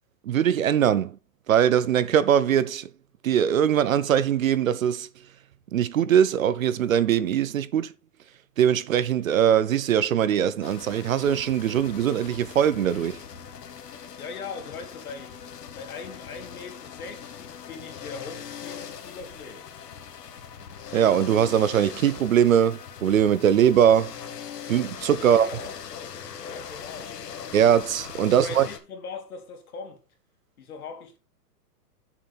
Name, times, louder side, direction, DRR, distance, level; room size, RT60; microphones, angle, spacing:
voice 1, 0.3-1.2 1.5-2.9 3.2-5.1 5.7-7.9 8.6-13.2 20.9-24.1 24.7-25.5 27.5-28.7, right 9 dB, 55° right, 0.7 m, -21 dB
sound 1, 10.6-28.8, left 7 dB, 85° left, 1.7 m, -40 dB
voice 2, 14.2-15.4 15.7-19.7 25.1-25.8 26.5-27.2 28.2-30.0 30.6-31.2, left 4 dB, 65° left, 2.9 m, -40 dB
7.6 x 6.9 x 4.2 m
hypercardioid pair, 180°, 48 cm